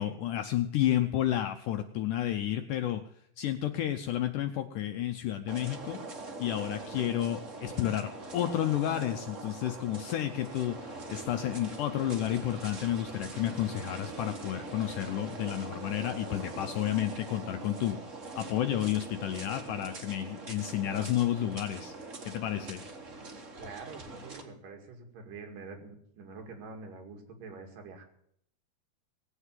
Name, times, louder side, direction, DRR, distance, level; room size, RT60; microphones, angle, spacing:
voice 1, 0.0-3.0 3.4-6.0 6.4-18.0 18.3-21.9 22.3-22.8, left 12 dB, 75° left, 7 dB, 1.9 m, -31 dB
sound 1, 5.5-24.4, right 3 dB, 85° right, 0.6 m, -43 dB
voice 2, 23.6-28.0, right 4 dB, 65° right, 3 dB, 3.6 m, -46 dB
18.5 x 8.2 x 7.4 m, 0.69 s
omnidirectional pair, 4.4 m